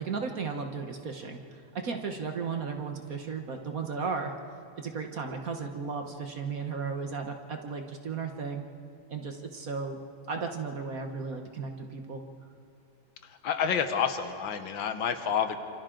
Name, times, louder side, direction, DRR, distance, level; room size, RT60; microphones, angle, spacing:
voice 1, 0.0-4.3 4.8-8.6 9.1-10.0 10.3-12.2, right 5 dB, 50° right, 4 dB, 1.4 m, -35 dB
voice 2, 13.2-15.6, left 7 dB, 70° left, 8 dB, 1.8 m, -29 dB
27.5 x 27.0 x 3.8 m, 2.4 s
omnidirectional pair, 2.2 m